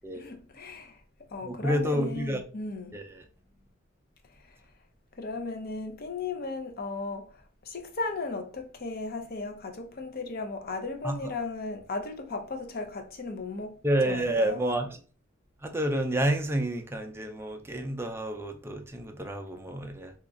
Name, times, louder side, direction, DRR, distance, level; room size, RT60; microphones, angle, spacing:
voice 1, 0.1-1.0 1.3-3.0 4.3-4.6 5.1-13.8 14.0-14.6, left 3 dB, 50° left, 0.6 m, -36 dB
voice 2, 1.4-2.4 2.9-3.2 11.0-11.3 13.8-15.0 15.6-20.1, right 1 dB, 15° right, 0.4 m, -29 dB
3.0 x 2.4 x 3.7 m
head